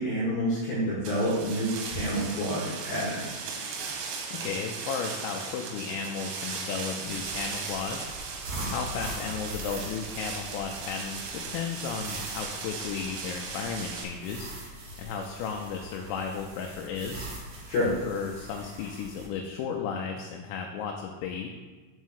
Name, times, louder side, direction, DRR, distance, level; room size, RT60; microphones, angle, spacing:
voice 1, 0.0-3.3 17.7-17.9, equal, 65° left, -6 dB, 3.2 m, -28 dB
sound 1, 1.0-14.0, right 5 dB, 80° right, 3.5 m, -37 dB
voice 2, 4.3-8.1 8.7-14.5 15.0-17.3 18.1-21.5, left 6 dB, 85° left, 2 dB, 3.2 m, -34 dB
sound 2, 7.0-19.3, right 1 dB, 55° right, 2.8 m, -42 dB
7.4 x 4.1 x 6.4 m, 1.3 s
omnidirectional pair, 5.9 m